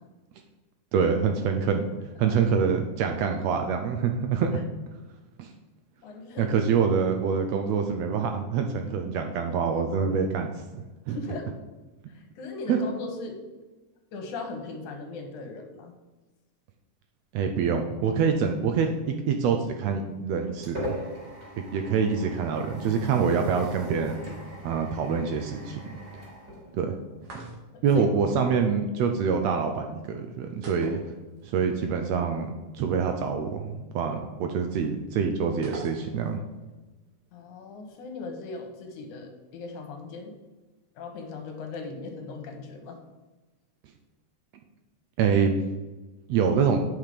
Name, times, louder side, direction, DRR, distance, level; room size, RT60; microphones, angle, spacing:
voice 1, 0.9-1.9 2.2-4.7 5.4-5.5 6.4-11.2 12.7-12.8 17.3-21.0 21.6-24.2 24.6-25.8 26.7-26.9 27.3-27.4 27.8-31.0 31.4-32.5 32.7-36.4 45.2-45.5 46.3-46.8, right 6 dB, 80° right, 5 dB, 1.6 m, -25 dB
voice 2, 6.0-6.5 11.1-11.5 12.1-13.4 14.1-15.9 21.4-21.5 27.7-28.1 37.3-40.4 41.0-43.0, left 3 dB, 80° left, 4 dB, 2.7 m, -38 dB
sound 1, 20.1-27.3, equal, 25° right, 3.4 m, -40 dB
sound 2, 27.2-27.9 30.6-31.7 31.9-32.0 35.6-36.4, right 2 dB, 55° right, 2.3 m, -41 dB
9.1 x 5.8 x 5.1 m, 1.2 s
omnidirectional pair, 3.5 m